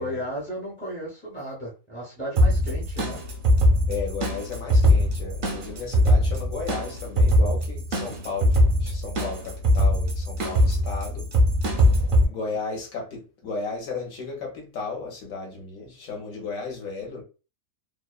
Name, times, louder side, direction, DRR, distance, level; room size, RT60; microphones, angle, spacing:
voice 1, 0.0-3.2 12.2-12.4, equal, 15° left, 0.3 m, -34 dB
sound 1, 2.4-12.2, equal, 55° right, 0.6 m, -21 dB
voice 2, 3.9-11.3 12.0-17.2, left 4 dB, 65° left, 1.1 m, -34 dB
2.8 x 2.0 x 2.3 m
omnidirectional pair, 1.6 m